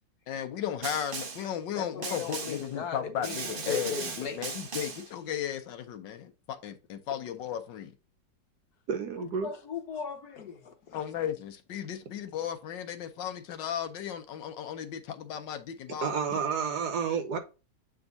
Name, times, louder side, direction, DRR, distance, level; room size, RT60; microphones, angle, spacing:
voice 1, 0.3-7.9 10.9-16.1, left 9 dB, 80° left, 1.5 m, -35 dB
Snare drum, 0.8-1.5 2.0-2.7 3.2-5.1, right 5 dB, 40° right, 0.8 m, -37 dB
voice 2, 1.7-4.4 9.2-11.0, left 6 dB, 60° left, 1.5 m, -38 dB
voice 3, 8.9-9.5 16.0-17.4, right 6 dB, 65° right, 1.5 m, -30 dB
7.8 x 3.5 x 4.0 m
omnidirectional pair, 2.0 m